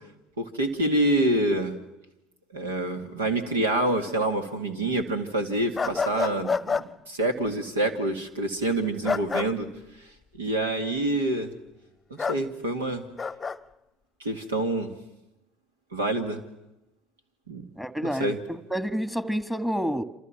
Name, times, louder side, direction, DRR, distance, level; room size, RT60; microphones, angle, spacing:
voice 1, 0.4-1.7 2.5-9.7 10.4-11.5 12.1-13.0 14.2-14.9 15.9-16.4 17.5-17.6 18.2-18.4, right 1 dB, 80° right, 2.4 m, -26 dB
sound 1, 5.8-6.9 9.0-9.5 12.2-12.4 13.2-13.6, left 5 dB, 25° left, 0.9 m, -27 dB
voice 2, 17.8-20.0, equal, 5° right, 1.7 m, -29 dB
28.5 x 27.5 x 6.0 m
figure-of-eight pair, 65°, 0 cm